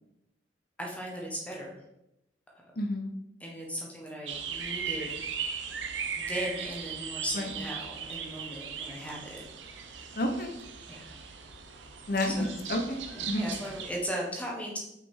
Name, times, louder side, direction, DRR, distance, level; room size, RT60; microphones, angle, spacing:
voice 1, 0.8-1.8 3.4-5.2 6.2-10.2 10.9-11.2 12.3-12.5 13.1-14.8, equal, 10° left, -2 dB, 1.3 m, -37 dB
voice 2, 2.8-3.1 7.3-7.5 10.1-10.5 12.1-13.5, left 1 dB, 55° left, 4 dB, 1.2 m, -30 dB
sound 1, 4.3-13.9, right 6 dB, 85° right, 0.8 m, -38 dB
6.1 x 5.3 x 4.8 m, 0.85 s
head